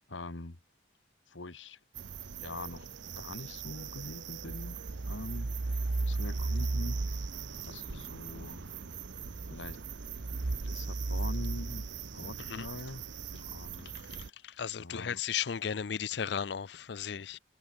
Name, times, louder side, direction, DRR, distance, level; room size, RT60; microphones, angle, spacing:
voice 1, 0.1-0.6 1.3-1.8 2.4-2.9 3.2-4.8 5.1-7.3 7.6-8.6 9.5-9.8 10.5-13.0 13.4-13.9 14.8-15.2, left 2 dB, 90° left, 1.8 m, -44 dB
sound 1, 2.0-14.3, right 3 dB, 80° right, 0.9 m, -36 dB
voice 2, 14.1-17.4, left 7 dB, 65° left, 0.5 m, -35 dB
head